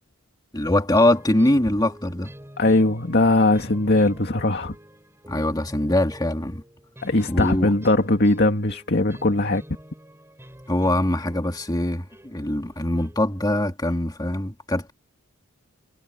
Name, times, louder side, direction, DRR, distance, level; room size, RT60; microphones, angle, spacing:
voice 1, 0.5-2.3 5.3-6.6 7.3-7.7 10.7-14.9, left 1 dB, 20° left, 2.5 m, -22 dB
sound 1, 0.9-13.6, equal, 10° right, 7.7 m, -46 dB
voice 2, 2.6-4.8 7.0-9.6, left 2 dB, 50° left, 2.1 m, -20 dB
head